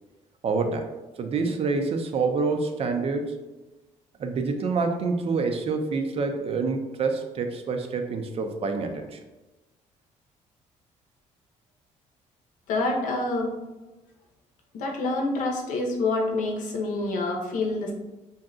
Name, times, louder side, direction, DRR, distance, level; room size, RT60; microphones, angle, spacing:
voice 1, 0.4-0.9 1.2-3.4 4.2-9.2, right 4 dB, 50° right, 6 dB, 0.4 m, -27 dB
voice 2, 12.7-13.5 14.7-17.9, left 2 dB, 75° left, 1 dB, 0.7 m, -27 dB
2.7 x 2.2 x 3.6 m, 1.1 s
cardioid pair, 80°, 13 cm